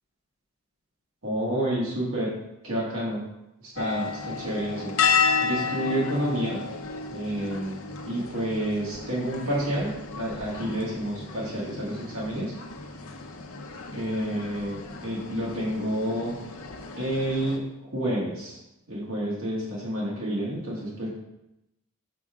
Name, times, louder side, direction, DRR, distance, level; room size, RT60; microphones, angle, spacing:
voice 1, 1.2-2.3 2.6-3.2 3.6-4.9 5.4-6.7 7.1-12.6 13.9-16.3 17.0-18.6 18.9-21.1, right 1 dB, 75° right, -5 dB, 1.9 m, -29 dB
sound 1, 3.8-17.6, left 5 dB, 80° left, 0.8 m, -32 dB
6.0 x 3.7 x 5.9 m, 0.90 s
head